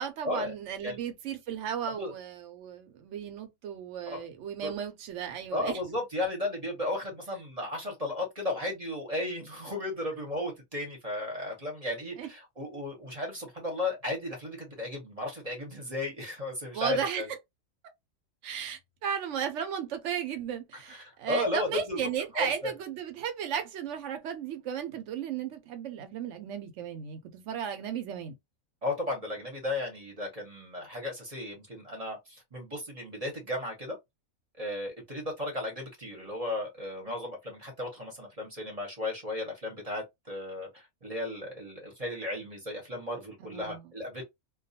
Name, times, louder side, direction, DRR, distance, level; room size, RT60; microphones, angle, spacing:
voice 1, 0.0-5.7 12.2-12.3 16.7-17.4 18.4-28.3 43.4-43.9, right 8 dB, 70° right, 0.8 m, -35 dB
voice 2, 5.5-17.3 20.9-22.1 22.3-22.7 28.8-34.0 34.6-44.2, left 2 dB, 35° right, 0.7 m, -35 dB
2.3 x 2.2 x 2.6 m
omnidirectional pair, 1.5 m